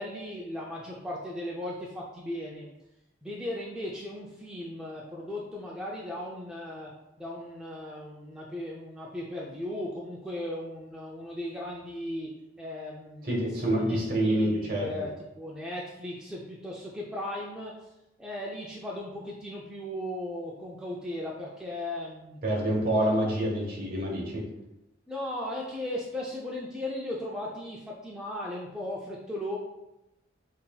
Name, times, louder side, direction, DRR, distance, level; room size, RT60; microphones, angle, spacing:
voice 1, 0.0-2.7 3.2-6.9 7.2-13.3 13.6-17.9 18.2-22.4 25.1-29.6, left 1 dB, 5° right, -4 dB, 0.3 m, -37 dB
voice 2, 13.2-14.9 22.4-24.4, right 1 dB, 45° right, -2 dB, 1.1 m, -27 dB
5.6 x 2.7 x 2.2 m, 0.92 s
head